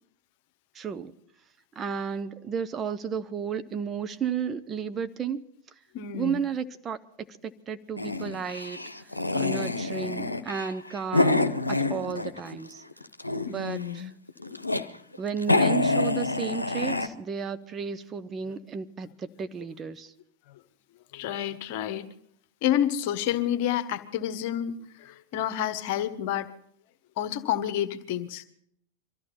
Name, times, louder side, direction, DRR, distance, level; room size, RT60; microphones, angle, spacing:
voice 1, 0.7-1.1 1.7-5.4 6.1-7.0 7.4-12.8 13.4-14.1 15.2-20.1, right 7 dB, 25° right, 10 dB, 0.9 m, -33 dB
voice 2, 5.9-6.4 13.4-14.1 18.5-18.6 20.5-20.6 21.1-22.0 22.6-26.5 27.2-28.4, left 11 dB, 45° left, 11 dB, 1.3 m, -29 dB
sound 1, 8.0-12.6 12.9-13.7 14.3-14.8 15.1-15.2 15.4-17.1, left 2 dB, 85° left, 0.9 m, -26 dB
23.5 x 14.0 x 4.3 m, 0.70 s
figure-of-eight pair, 90°, 0 cm